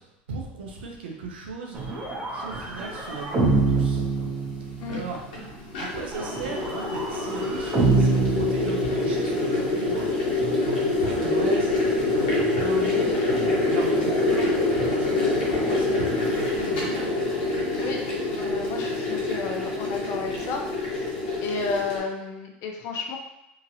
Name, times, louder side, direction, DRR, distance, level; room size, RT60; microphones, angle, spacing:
voice 1, 0.0-1.9 2.3-4.3 4.9-17.2, right 3 dB, 90° right, 1 dB, 0.6 m, -37 dB
sound 1, 1.7-5.0 6.1-9.4, right 3 dB, 35° right, 1.0 m, -26 dB
sound 2, 3.4-3.5 4.5-22.0, left 2 dB, 80° left, 1.0 m, -26 dB
voice 2, 18.4-20.6 21.0-21.1 21.4-23.2, left 4 dB, 55° left, 2 dB, 0.6 m, -32 dB
2.9 x 2.6 x 2.6 m, 0.88 s
hypercardioid pair, 95°, 5 cm